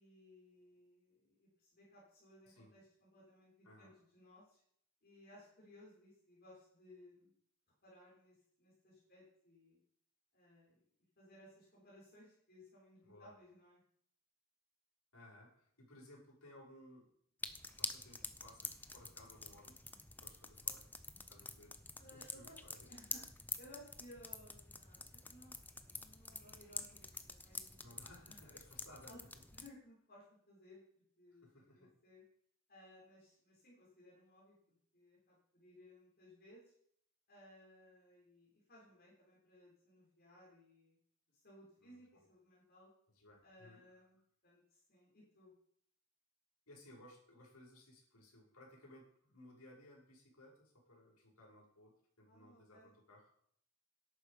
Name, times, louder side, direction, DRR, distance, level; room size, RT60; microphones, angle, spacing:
voice 1, 0.0-4.6 5.0-7.3 7.8-9.8 10.3-10.8 11.2-13.8 22.0-23.2 23.6-28.4 29.0-29.2 29.5-31.4 31.7-32.2 32.7-36.7 37.3-41.0 41.3-42.9 43.4-45.5 52.3-52.9, left 1 dB, 45° left, -6 dB, 6.7 m, -61 dB
voice 2, 15.1-17.1 17.8-19.8 20.2-20.8 21.3-23.0 27.8-29.1 31.4-31.9 41.8-42.0 43.1-43.8 46.7-53.3, left 1 dB, 75° left, -2 dB, 6.6 m, -60 dB
sound 1, 17.4-29.7, left 3 dB, 10° left, 0.7 m, -48 dB
13.0 x 11.5 x 5.3 m, 0.66 s
head